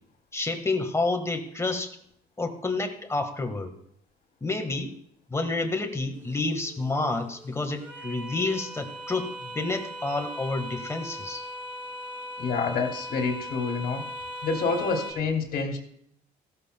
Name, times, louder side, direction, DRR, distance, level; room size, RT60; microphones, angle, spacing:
voice 1, 0.3-1.9 2.4-3.7 4.4-5.0 5.3-11.4, left 3 dB, 15° left, 5 dB, 1.6 m, -29 dB
sound 1, 6.1-15.1, equal, 10° right, 3.8 m, -39 dB
voice 2, 12.4-14.0 14.4-15.8, left 4 dB, 60° left, 2 dB, 2.4 m, -27 dB
16.5 x 13.0 x 2.2 m, 0.68 s
cardioid pair, 110°, 17 cm